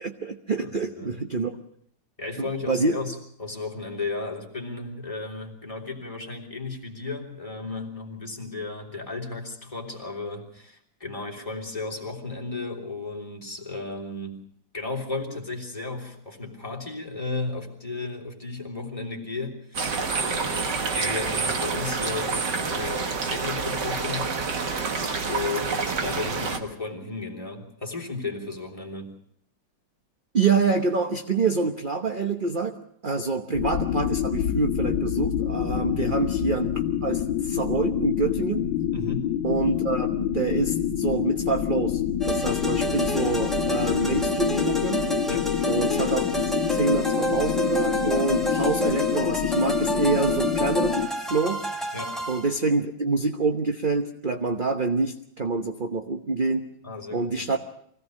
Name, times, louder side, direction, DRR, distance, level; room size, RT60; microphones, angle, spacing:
voice 1, 0.0-1.5 2.4-3.0 30.3-32.7 33.0-36.7 37.0-38.7 39.4-42.0 42.3-45.0 45.7-46.3 46.7-51.0 51.3-51.6 52.3-56.7 57.1-57.6, right 4 dB, 35° right, 5 dB, 1.0 m, -26 dB
voice 2, 0.6-1.1 2.2-14.4 14.7-24.4 25.2-29.1 35.9-36.2 38.9-39.4 45.3-45.5 51.9-52.2 56.8-57.5, left 3 dB, 15° left, 2 dB, 3.3 m, -34 dB
sound 1, 19.7-26.6, right 4 dB, 65° right, 2.3 m, -28 dB
sound 2, 33.5-51.1, left 10 dB, 80° left, 2.0 m, -27 dB
sound 3, 42.2-52.5, right 1 dB, ahead, 2.0 m, -29 dB
24.5 x 17.0 x 6.4 m, 0.69 s
omnidirectional pair, 2.0 m